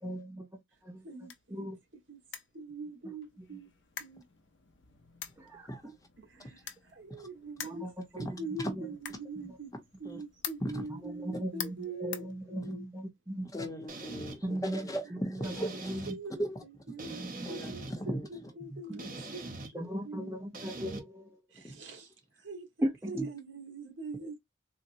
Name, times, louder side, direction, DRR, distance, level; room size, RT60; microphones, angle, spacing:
voice 1, 0.0-1.1 1.5-1.8 3.1-3.2 5.4-5.9 7.6-7.9 8.3-8.4 8.7-8.9 9.5-9.6 11.0-13.5 14.4-14.9 15.2-16.2 17.1-17.7 18.6-19.0 19.7-21.4 22.8-23.3, equal, 15° right, 0.5 m, -38 dB
sound 1, 0.7-13.0, left 9 dB, 70° left, 0.6 m, -48 dB
voice 2, 1.0-1.7 2.1-2.2 2.5-3.7 4.0-4.2 6.2-7.9 8.1-9.7 10.0-12.8 15.4-15.8 16.1-19.4 19.7-20.3 21.5-24.4, right 3 dB, 75° right, 1.3 m, -43 dB
voice 3, 13.5-16.0 16.4-16.6 17.5-18.3 21.6-21.8, equal, 20° left, 0.7 m, -37 dB
sound 2, 13.9-14.4 15.4-16.2 17.0-17.9 19.0-19.7 20.5-21.0, right 2 dB, 45° right, 0.9 m, -42 dB
3.9 x 2.1 x 2.6 m
head